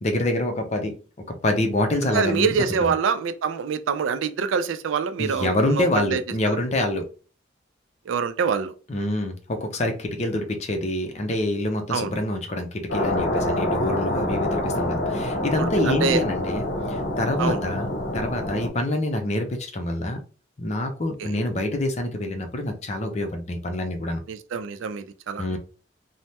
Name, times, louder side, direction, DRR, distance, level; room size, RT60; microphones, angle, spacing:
voice 1, 0.0-1.0 1.3-2.5 2.8-2.9 5.2-7.1 8.9-20.2 20.6-24.2 25.4-25.6, left 1 dB, 35° left, 0.5 m, -26 dB
voice 2, 2.1-6.6 8.1-8.7 11.9-12.1 15.6-16.2 17.4-17.6 21.2-21.3 24.3-25.6, right 5 dB, 90° right, 0.4 m, -25 dB
sound 1, 12.9-18.7, left 1 dB, 60° left, 0.8 m, -26 dB
3.3 x 2.0 x 2.8 m
head